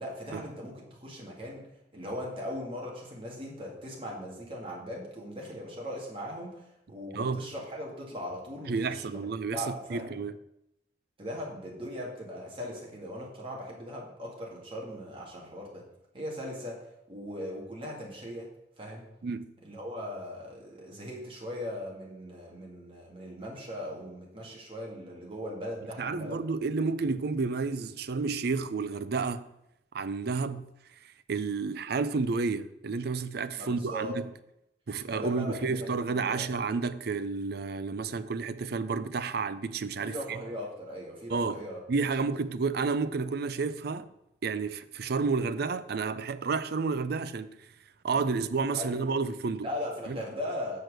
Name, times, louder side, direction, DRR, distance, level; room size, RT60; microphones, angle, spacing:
voice 1, 0.0-1.7 1.9-9.2 9.5-10.1 11.2-15.8 16.1-18.5 18.8-19.1 19.6-26.4 33.6-34.2 35.1-36.5 40.0-41.8 48.8-49.0 49.6-50.8, equal, 30° right, 2.4 m, -39 dB
voice 2, 8.7-10.4 19.2-19.5 26.0-29.5 29.9-30.6 31.3-34.3 34.9-40.4 41.3-41.6 41.9-44.1 44.4-47.5 48.0-49.7 50.1-50.2, right 4 dB, 65° right, 0.5 m, -31 dB
6.5 x 6.1 x 6.5 m
head